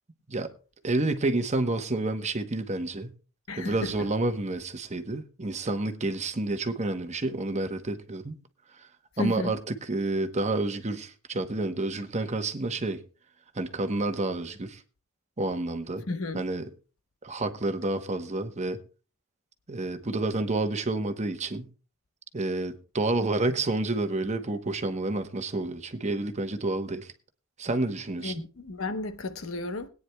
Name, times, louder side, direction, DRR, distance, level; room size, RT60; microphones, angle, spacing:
voice 1, 0.8-3.1 3.6-8.4 8.7-8.9 9.2-13.0 13.5-14.8 15.4-16.0 16.3-16.6 17.2-18.8 19.7-21.7 22.3-27.1 27.6-28.3, right 2 dB, 35° right, 1.0 m, -29 dB
voice 2, 3.5-3.9 9.2-9.5 16.1-16.4 28.2-29.9, left 2 dB, 80° left, 1.0 m, -33 dB
21.0 x 9.4 x 2.3 m
head